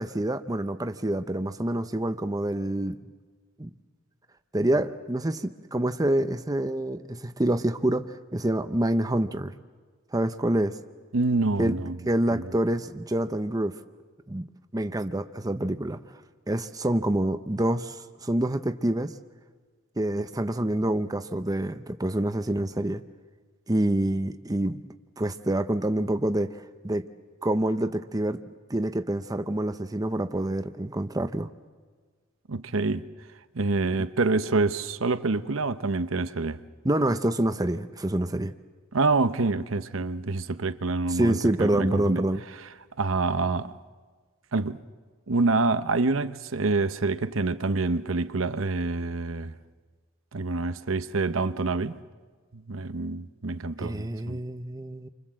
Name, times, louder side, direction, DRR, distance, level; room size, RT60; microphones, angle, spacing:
voice 1, 0.0-3.0 3.6-3.7 4.5-9.5 10.1-10.8 11.6-11.8 12.1-13.7 14.3-14.4 14.7-16.0 16.5-19.1 20.0-23.0 23.7-24.8 25.2-26.6 26.8-27.0 27.4-28.4 28.7-31.5 36.8-38.5 41.1-42.4 53.8-55.1, right 1 dB, 20° right, 0.8 m, -27 dB
voice 2, 11.1-12.0 12.3-12.5 32.5-33.1 33.5-36.6 38.9-42.2 43.0-43.8 44.5-44.8 45.3-49.5 50.3-52.0 52.5-54.4, right 3 dB, 70° right, 0.9 m, -27 dB
30.0 x 25.5 x 7.6 m
head